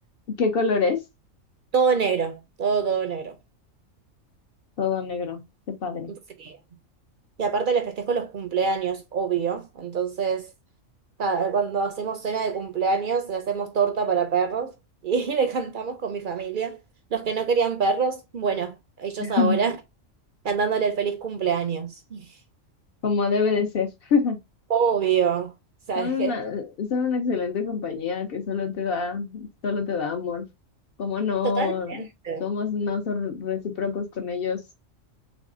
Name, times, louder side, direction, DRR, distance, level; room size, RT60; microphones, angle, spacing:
voice 1, 0.4-1.0 4.8-5.4 5.8-6.1 19.2-19.6 23.0-24.4 26.0-30.5 31.0-32.1 32.4-34.6, left 5 dB, 55° left, 0.7 m, -26 dB
voice 2, 1.7-3.4 6.1-6.6 7.4-10.5 11.2-14.7 15.0-16.8 17.1-19.8 20.4-22.2 24.7-25.5 25.9-26.4 31.6-32.4, right 6 dB, 60° right, 0.5 m, -25 dB
3.5 x 3.1 x 2.5 m
omnidirectional pair, 1.3 m